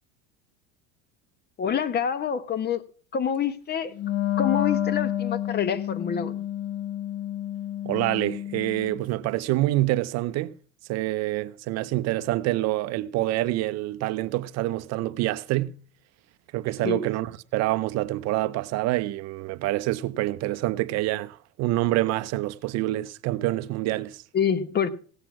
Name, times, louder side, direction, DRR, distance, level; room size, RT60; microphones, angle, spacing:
voice 1, 1.6-2.8 3.1-3.9 4.4-6.4 16.8-17.0 24.3-24.9, left 7 dB, 30° left, 1.0 m, -26 dB
Wind instrument woodwind instrument, 3.9-9.0, left 12 dB, 45° left, 1.5 m, -29 dB
voice 2, 7.8-10.5 10.9-15.7 16.5-24.2, right 17 dB, 50° right, 0.6 m, -26 dB
17.0 x 8.4 x 5.9 m
supercardioid pair, 130°, 33 cm